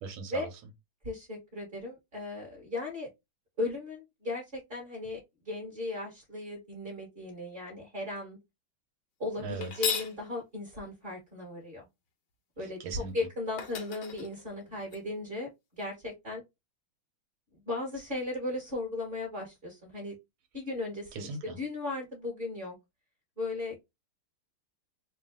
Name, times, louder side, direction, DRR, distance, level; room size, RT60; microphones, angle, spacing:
voice 1, 0.0-0.5 9.4-9.9 12.6-13.1 21.1-21.6, right 4 dB, 75° right, 1.7 m, -39 dB
voice 2, 1.0-3.1 3.6-8.4 9.2-11.9 12.6-12.8 13.1-16.4 17.6-20.1 20.5-21.3 21.6-22.7 23.4-23.8, left 2 dB, 30° right, 1.7 m, -36 dB
sound 1, 9.6-10.2 13.1-13.2 13.6-15.0, left 6 dB, 65° left, 1.4 m, -35 dB
3.7 x 2.6 x 3.6 m
omnidirectional pair, 2.3 m